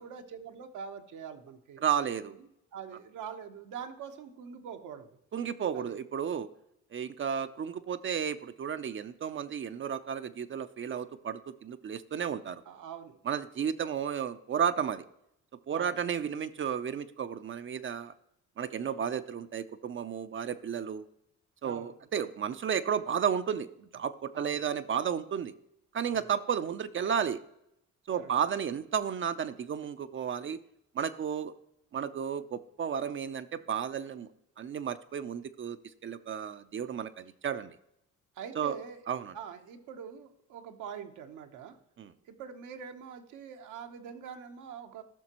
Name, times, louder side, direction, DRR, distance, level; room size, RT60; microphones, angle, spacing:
voice 1, 0.0-1.8 2.7-5.1 5.7-5.9 12.7-13.2 15.7-16.0 21.6-21.9 24.3-24.6 26.1-26.3 28.1-28.3 38.4-39.0 39.3-41.8 42.3-45.0, right 7 dB, 85° right, 5 dB, 1.0 m, -44 dB
voice 2, 1.8-2.3 5.3-6.5 6.9-12.6 13.2-15.0 15.7-18.1 18.6-21.1 21.6-25.5 25.9-27.4 28.1-30.6 30.9-31.5 31.9-34.3 34.6-35.8 36.0-37.7 38.6-38.8 39.1-39.3 42.0-42.1, right 8 dB, 40° right, 10 dB, 0.5 m, -33 dB
13.5 x 5.9 x 2.9 m, 0.79 s
cardioid pair, 90°, 30 cm